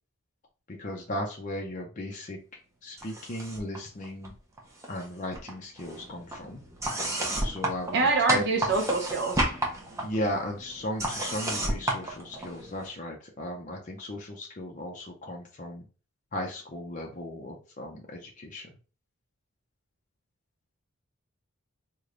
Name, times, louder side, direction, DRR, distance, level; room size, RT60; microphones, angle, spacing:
voice 1, 0.7-2.4 2.8-4.3 4.9-6.6 7.4-8.4 10.0-15.9 16.3-18.7, left 1 dB, 35° left, 0 dB, 0.5 m, -36 dB
sound 1, 3.0-3.8 4.0-5.1 5.3-12.9, right 1 dB, 15° right, 0.6 m, -32 dB
voice 2, 7.9-9.4, right 3 dB, 55° right, 1 dB, 0.7 m, -25 dB
3.2 x 2.2 x 3.7 m, 0.36 s
head